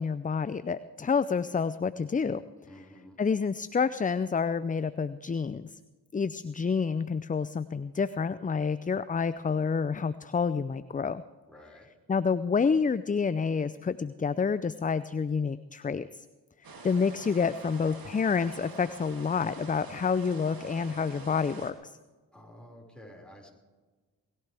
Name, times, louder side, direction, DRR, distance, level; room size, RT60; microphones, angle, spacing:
voice 1, 0.0-2.4 3.2-5.7 6.1-11.2 12.1-16.2 16.8-21.9, left 5 dB, 20° left, 15 dB, 0.5 m, -28 dB
voice 2, 2.7-3.2 11.5-11.9 22.3-23.5, equal, ahead, -2 dB, 5.4 m, -50 dB
sound 1, 16.6-21.7, right 3 dB, 55° right, 2.7 m, -46 dB
20.5 x 15.0 x 3.5 m, 1.3 s
supercardioid pair, 45°, 41 cm